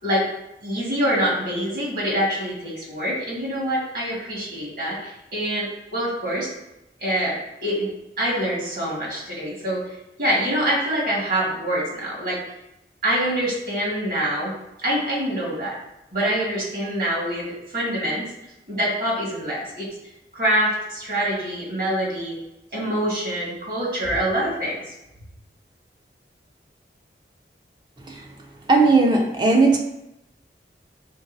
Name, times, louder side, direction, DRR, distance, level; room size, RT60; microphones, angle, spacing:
voice 1, 0.6-6.5 7.0-7.3 7.6-7.9 8.2-9.8 10.2-12.4 13.0-14.5 14.8-15.8 16.1-17.5 17.7-18.3 18.7-19.9 20.3-22.4 22.7-24.8, right 1 dB, 55° right, -5 dB, 1.7 m, -25 dB
voice 2, 28.7-29.8, right 3 dB, 25° right, 1 dB, 0.4 m, -17 dB
5.2 x 3.7 x 2.6 m, 0.89 s
head